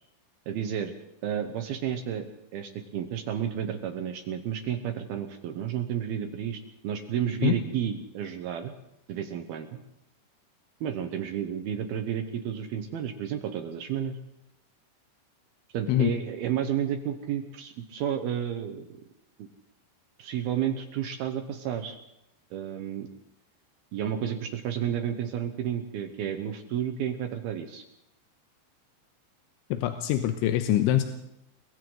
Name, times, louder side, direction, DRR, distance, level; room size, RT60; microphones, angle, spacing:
voice 1, 0.5-0.9 1.2-2.3 2.5-8.7 9.1-9.8 10.8-14.2 15.7-18.9 19.4-19.5 20.2-22.0 22.5-23.1 23.9-27.8, right 9 dB, 70° right, 7 dB, 2.6 m, -31 dB
voice 2, 29.7-31.0, left 12 dB, 90° left, 7 dB, 3.3 m, -24 dB
29.5 x 22.5 x 4.0 m, 0.82 s
omnidirectional pair, 5.3 m